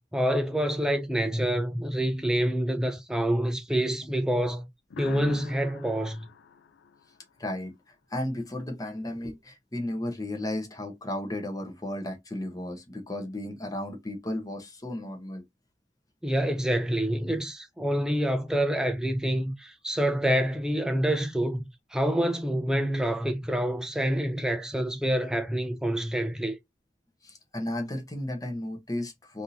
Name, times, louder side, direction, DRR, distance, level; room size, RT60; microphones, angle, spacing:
voice 1, 0.1-4.7 5.0-6.3 16.2-26.6, equal, 5° right, 0.4 m, -27 dB
sound 1, 4.9-7.6, left 5 dB, 70° left, 0.4 m, -45 dB
voice 2, 7.4-15.4 27.2-29.4, left 1 dB, 20° left, 0.9 m, -34 dB
3.5 x 2.7 x 2.7 m
head